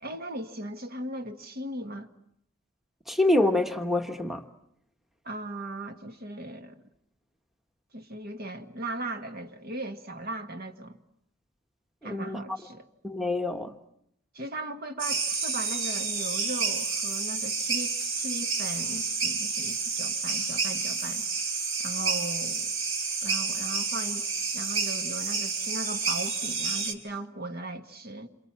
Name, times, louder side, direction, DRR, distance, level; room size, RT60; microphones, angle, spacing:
voice 1, 0.0-2.1 5.2-6.8 7.9-11.0 12.0-12.9 14.3-21.3 21.8-22.7 23.2-24.3 24.5-28.4, right 1 dB, 50° right, 1.8 m, -38 dB
voice 2, 3.1-4.4 12.0-12.6 13.0-13.7, left 2 dB, ahead, 1.3 m, -26 dB
sound 1, 15.0-26.9, right 4 dB, 70° right, 3.7 m, -30 dB
28.0 x 28.0 x 7.5 m
head